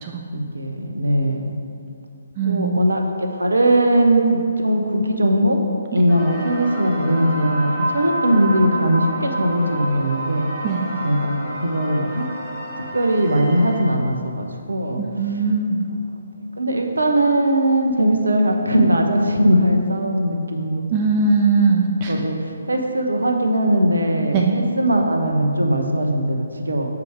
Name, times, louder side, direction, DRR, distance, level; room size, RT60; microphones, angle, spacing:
voice 1, 0.3-1.6 2.5-5.6 5.9-10.4 11.0-11.4 11.6-12.2 12.9-15.0 16.6-20.9 22.1-26.9, right 1 dB, 70° right, 2 dB, 0.8 m, -20 dB
voice 2, 2.4-2.8 6.0-6.1 10.6-10.8 15.0-15.8 20.9-22.1 24.3-24.5, right 4 dB, 25° right, 1 dB, 0.5 m, -20 dB
sound 1, 6.1-13.8, right 1 dB, ahead, 1.4 m, -29 dB
6.9 x 4.8 x 4.8 m, 2.4 s
figure-of-eight pair, 140°, 0 cm